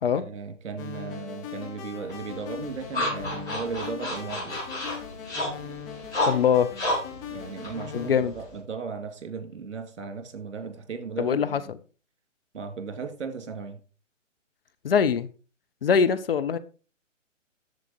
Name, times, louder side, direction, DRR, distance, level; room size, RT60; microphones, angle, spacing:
voice 1, 0.1-4.6 7.3-11.7 12.5-13.8, right 5 dB, 60° right, 3.0 m, -36 dB
sound 1, 0.8-8.1, left 8 dB, 30° left, 2.9 m, -40 dB
sound 2, 2.1-8.6, left 1 dB, 10° left, 6.2 m, -32 dB
voice 2, 6.2-6.7 7.9-8.3 11.2-11.8 14.8-15.3 15.8-16.6, left 7 dB, 45° left, 0.9 m, -23 dB
10.5 x 7.6 x 4.6 m
figure-of-eight pair, 135°, 38 cm